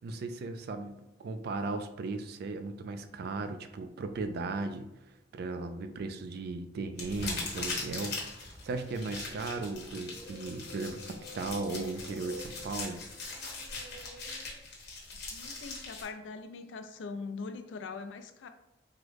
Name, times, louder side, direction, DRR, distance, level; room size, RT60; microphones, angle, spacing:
voice 1, 0.0-4.9 5.3-8.2 8.6-13.0, right 3 dB, 55° right, 8 dB, 0.3 m, -36 dB
sound 1, 6.9-16.1, left 3 dB, 60° left, 1.1 m, -41 dB
sound 2, 8.4-14.5, equal, 30° left, 0.6 m, -50 dB
voice 2, 15.3-18.5, left 4 dB, 75° left, 8 dB, 0.4 m, -42 dB
3.6 x 2.1 x 3.1 m, 0.93 s
head